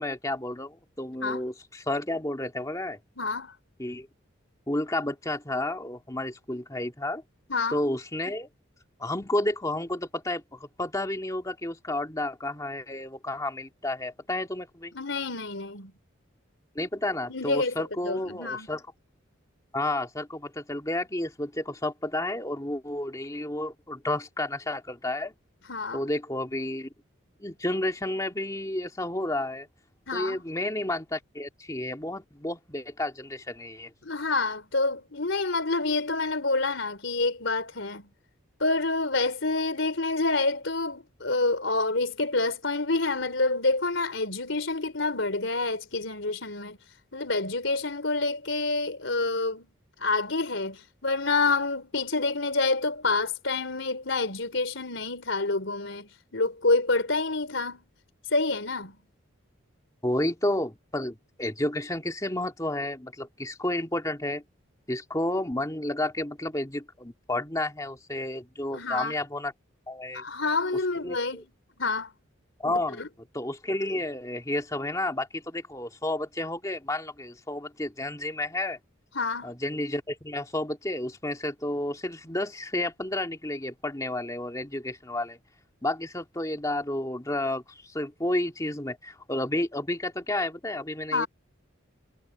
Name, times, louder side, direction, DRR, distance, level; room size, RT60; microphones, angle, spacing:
voice 1, 0.0-3.0 3.8-4.1 4.7-7.2 7.7-8.5 9.0-14.9 16.8-18.8 19.7-25.3 25.9-26.9 27.4-29.7 30.1-33.9 60.0-64.4 64.9-69.5 69.9-70.2 71.0-71.4 72.6-73.0 73.3-78.8 79.4-85.4 85.8-91.3, left 1 dB, 15° left, 2.4 m, -31 dB
voice 2, 3.2-3.5 7.5-7.8 14.9-15.9 17.3-17.8 18.0-18.7 25.7-26.0 30.1-30.4 34.0-38.1 38.6-46.8 47.1-49.7 50.0-57.8 58.3-59.0 68.7-69.2 70.1-71.5 71.8-72.1 72.7-73.1 79.2-79.5 91.1-91.3, left 3 dB, 70° left, 3.8 m, -28 dB
head